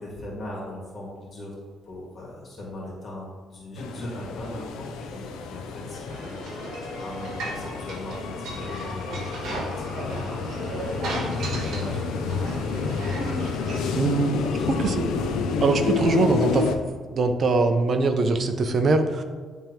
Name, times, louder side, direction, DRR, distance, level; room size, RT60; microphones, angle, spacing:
voice 1, 0.0-1.5 1.8-6.7 7.0-12.1 12.3-13.2 14.5-14.7 15.0-15.1, left 1 dB, 45° left, -4 dB, 1.9 m, -40 dB
sound 1, 3.8-16.8, left 5 dB, 90° left, 0.5 m, -29 dB
sound 2, 6.1-14.0, right 2 dB, 75° right, 1.3 m, -36 dB
voice 2, 13.9-14.4 14.7-15.1 15.6-16.7 17.1-19.2, right 3 dB, 50° right, 7 dB, 0.7 m, -22 dB
10.5 x 3.5 x 2.9 m, 1.5 s
cardioid pair, 90°, 0 cm